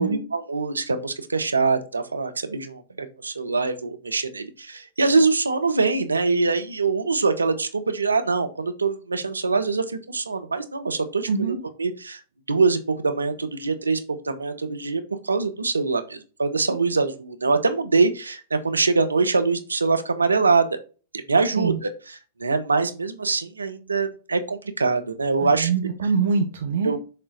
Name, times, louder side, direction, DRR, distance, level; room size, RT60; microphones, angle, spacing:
voice 1, 0.0-11.3 11.8-12.2 12.5-20.7 21.3-21.9 22.4-25.7 26.8-27.0, right 4 dB, 85° right, 8 dB, 1.0 m, -23 dB
voice 2, 11.3-11.6 21.5-21.8 25.4-26.9, right 5 dB, 65° right, 5 dB, 1.0 m, -24 dB
6.8 x 3.8 x 3.9 m, 0.34 s
figure-of-eight pair, 105°, 0 cm